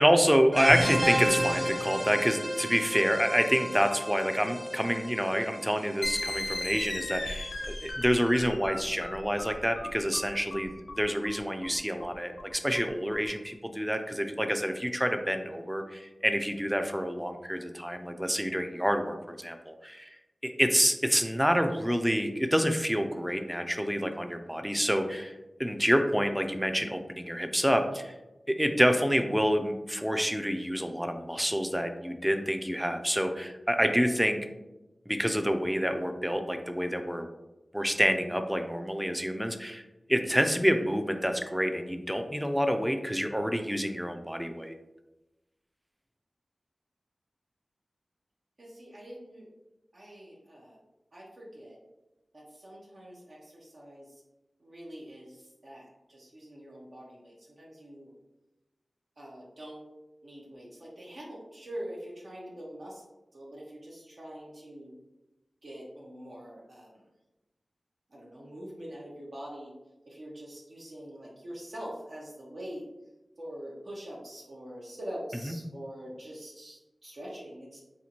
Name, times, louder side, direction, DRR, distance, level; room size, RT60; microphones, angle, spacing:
voice 1, 0.0-20.1 20.4-25.3 25.6-28.1 28.5-34.4 35.1-37.3 37.7-39.8 40.1-44.7 75.5-75.6, equal, 5° right, 7 dB, 0.3 m, -28 dB
sound 1, 0.5-7.8, equal, 25° right, 1.1 m, -33 dB
sound 2, 6.0-13.3, left 1 dB, 80° left, 0.6 m, -37 dB
voice 2, 48.6-49.4 49.9-50.8 51.1-51.8 52.3-54.2 54.6-58.1 59.2-59.8 60.2-63.0 63.3-64.9 65.6-67.0 68.1-69.7 70.1-72.8 73.4-77.8, equal, 65° right, -5 dB, 0.7 m, -44 dB
4.2 x 2.5 x 2.8 m, 1.0 s
wide cardioid pair, 70°, 0 cm